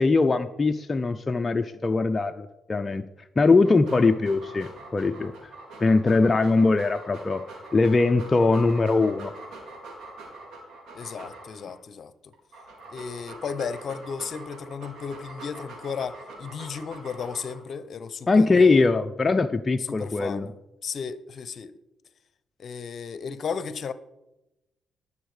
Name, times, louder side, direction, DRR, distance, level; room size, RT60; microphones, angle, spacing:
voice 1, 0.0-3.0 3.4-5.3 5.8-7.5 7.7-9.3 18.3-20.5, left 3 dB, 25° left, 0.6 m, -21 dB
Dog, 3.5-11.8 12.3-17.7, right 2 dB, 80° right, 4.6 m, -44 dB
voice 2, 10.9-12.3 12.9-18.8 19.9-20.5 20.8-21.7 22.6-23.9, left 6 dB, 55° left, 0.9 m, -34 dB
18.5 x 7.2 x 5.0 m
cardioid pair, 90°, 0 cm